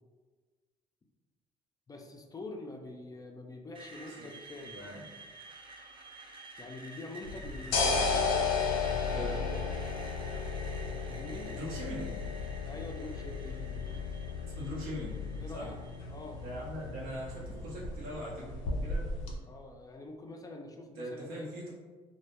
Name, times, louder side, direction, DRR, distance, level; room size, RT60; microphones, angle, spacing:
voice 1, 1.9-4.8 6.6-8.0 11.1-11.6 12.7-13.9 15.4-15.8 16.1-16.5 19.5-21.5, left 2 dB, 25° left, 2 dB, 0.3 m, -45 dB
Screech, 3.7-17.7, right 2 dB, 35° right, 0.5 m, -51 dB
voice 2, 4.7-5.1 9.0-9.5 11.5-12.2 14.4-15.2 15.5-15.7 16.4-19.1 21.0-21.7, equal, 85° right, -4 dB, 0.8 m, -41 dB
sound 1, 7.2-19.3, left 4 dB, 90° left, 0.4 m, -34 dB
2.1 x 2.0 x 2.9 m, 1.4 s
supercardioid pair, 65°, 15 cm